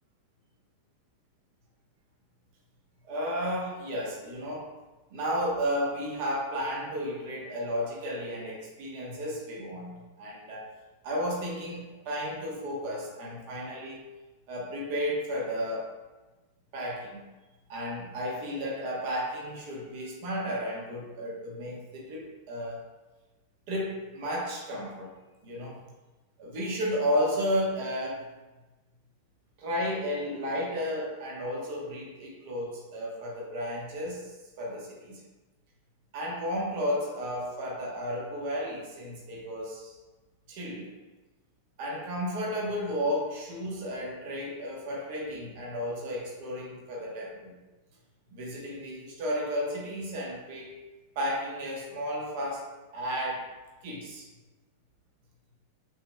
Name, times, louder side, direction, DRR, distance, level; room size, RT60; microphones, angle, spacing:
voice 1, 3.0-4.7 5.1-10.7 11.0-14.0 14.5-15.9 16.7-17.2 17.7-22.8 23.7-25.1 25.4-25.9 26.4-28.3 29.6-35.2 36.1-40.0 40.5-40.9 41.8-47.5 48.3-50.8 51.1-53.5 53.8-54.3, equal, 50° right, -3 dB, 1.1 m, -33 dB
5.8 x 3.6 x 2.3 m, 1.2 s
figure-of-eight pair, 90°, 0 cm